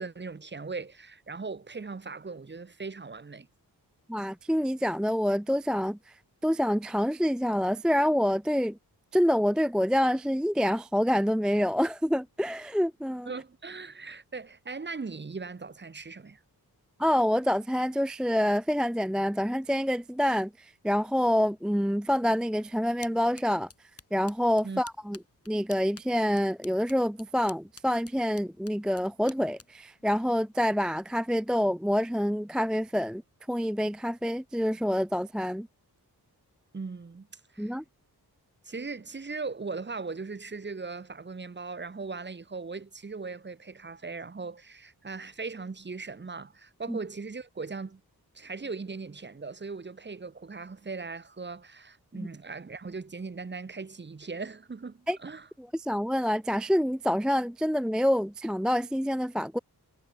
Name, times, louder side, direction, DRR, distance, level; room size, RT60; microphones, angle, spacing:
voice 1, 0.0-3.5 13.3-16.4 24.6-24.8 36.7-37.7 38.6-48.0 48.3-55.5, right 4 dB, 30° right, 0.9 m, -39 dB
voice 2, 4.1-6.0 6.4-8.8 9.1-13.3 17.0-23.7 24.1-25.2 25.5-33.2 33.5-35.7 37.6-37.8 46.9-47.0 52.1-52.3 55.1-55.2 55.7-59.6, equal, ahead, 0.3 m, -27 dB
sound 1, 23.0-31.1, left 4 dB, 40° left, 3.0 m, -54 dB
wide cardioid pair, 125°, 38 cm